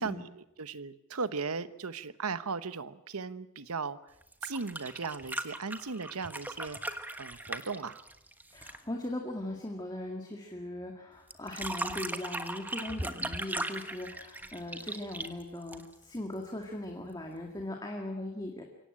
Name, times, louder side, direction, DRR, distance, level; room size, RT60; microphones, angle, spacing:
voice 1, 0.0-4.0 4.4-6.8 7.2-8.0, right 4 dB, 85° right, 14 dB, 1.0 m, -37 dB
sound 1, 4.2-8.9 11.3-16.2 17.6-17.7, right 2 dB, 10° right, 1.2 m, -38 dB
voice 2, 8.5-18.6, left 1 dB, 20° left, 1 dB, 2.0 m, -39 dB
24.0 x 17.5 x 8.9 m, 0.90 s
head